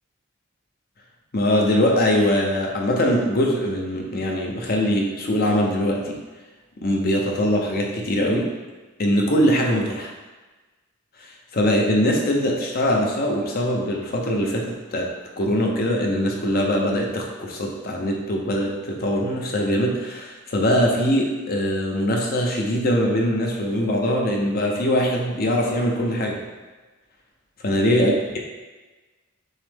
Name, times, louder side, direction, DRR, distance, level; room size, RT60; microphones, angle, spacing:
voice 1, 1.3-6.2 6.8-8.5 9.0-10.1 11.5-26.4 27.6-28.4, equal, 45° left, 0 dB, 0.7 m, -22 dB
6.2 x 2.1 x 3.5 m, 1.2 s
head